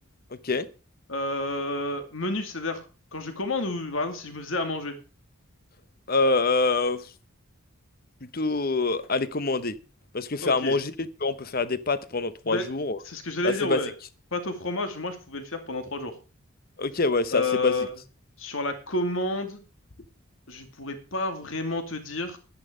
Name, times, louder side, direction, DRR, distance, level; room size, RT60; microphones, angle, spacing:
voice 1, 0.3-0.7 6.1-7.1 8.3-9.7 10.1-13.0 13.4-13.8 16.8-17.8, left 3 dB, 45° left, 0.9 m, -25 dB
voice 2, 1.1-2.8 3.1-5.0 10.4-10.8 12.4-12.7 13.0-13.9 14.3-16.2 17.3-17.9 18.4-19.6 20.5-22.4, left 2 dB, 65° left, 2.4 m, -30 dB
11.5 x 10.5 x 5.0 m
head